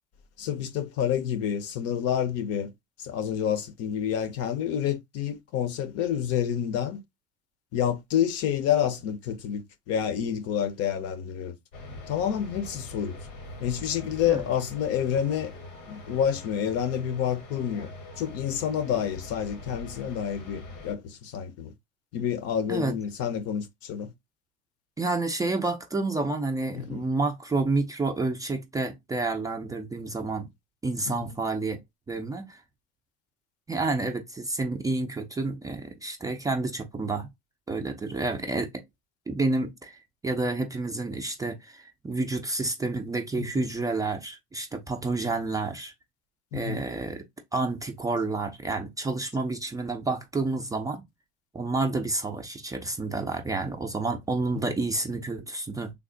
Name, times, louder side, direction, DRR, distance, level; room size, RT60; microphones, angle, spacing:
voice 1, 0.4-2.7 3.0-7.0 7.7-11.5 12.1-13.2 13.6-15.5 15.9-17.9 18.2-21.7 22.1-24.1 26.7-27.1 31.1-31.4 43.3-43.6 46.5-46.8 54.5-54.6, left 9 dB, 55° left, 0.7 m, -28 dB
sound 1, 11.7-20.9, left 2 dB, 90° left, 1.3 m, -43 dB
voice 2, 25.0-30.5 30.8-31.8 32.1-32.6 33.7-37.3 37.7-38.7 39.3-45.9 46.5-47.2 47.5-51.0 51.5-55.9, right 3 dB, 10° right, 0.4 m, -29 dB
3.5 x 2.0 x 3.7 m
supercardioid pair, 110°, 29 cm